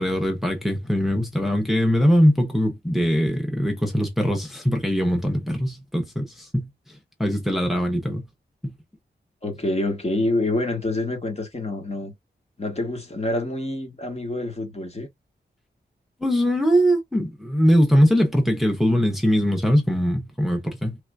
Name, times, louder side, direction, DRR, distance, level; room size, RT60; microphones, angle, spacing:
voice 1, 0.0-6.7 7.2-8.3 8.6-8.7 16.2-21.0, equal, ahead, 0.9 m, -21 dB
voice 2, 9.4-12.1 12.6-15.1, left 2 dB, 35° left, 1.3 m, -27 dB
3.3 x 2.9 x 2.3 m
wide cardioid pair, 85°, 18 cm